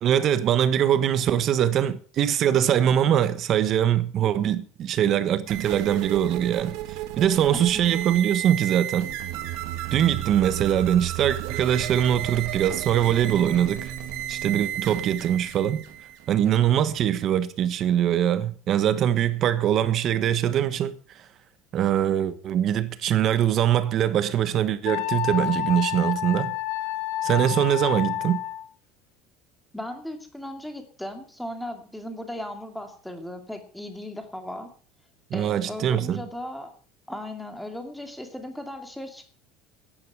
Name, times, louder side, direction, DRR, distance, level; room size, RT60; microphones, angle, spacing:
voice 1, 0.0-9.1 9.9-13.9 14.3-15.8 16.3-20.9 21.7-26.5 27.2-28.4 35.3-36.2, right 10 dB, 35° right, 1.4 m, -22 dB
sound 1, 5.5-17.4, right 12 dB, 60° right, 2.4 m, -33 dB
voice 2, 7.5-7.9 29.7-34.7 35.3-36.7 37.1-39.2, left 1 dB, 5° left, 2.5 m, -37 dB
Wind instrument woodwind instrument, 24.8-28.6, left 14 dB, 85° left, 3.2 m, -29 dB
15.5 x 10.5 x 4.8 m
cardioid pair, 170°, 0 cm